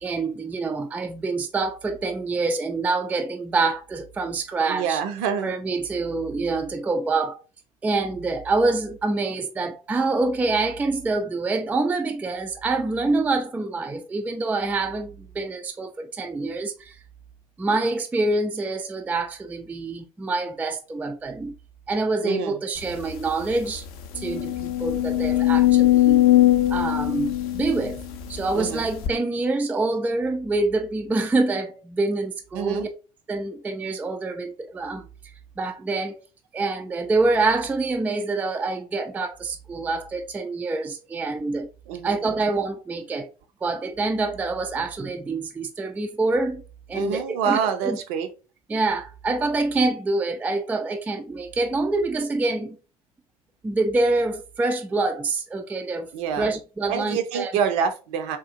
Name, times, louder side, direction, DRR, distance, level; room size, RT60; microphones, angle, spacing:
voice 1, 0.0-5.0 5.4-7.4 7.8-17.0 17.6-21.5 21.9-23.8 24.2-26.3 26.7-28.0 28.3-32.9 33.3-35.1 35.6-36.2 36.5-41.7 42.0-43.3 43.6-46.6 46.9-48.0 48.7-52.8 53.6-57.5, right 3 dB, 10° right, 0.3 m, -26 dB
voice 2, 4.7-5.6 22.2-22.6 28.5-28.9 32.5-32.9 41.9-42.2 46.9-48.3 56.1-56.5 56.9-58.4, right 7 dB, 55° right, 0.6 m, -26 dB
sound 1, 23.0-23.1 23.5-23.6 24.1-28.4 29.0-29.1, left 14 dB, 50° left, 0.5 m, -20 dB
3.7 x 2.4 x 2.6 m
figure-of-eight pair, 65°, 20 cm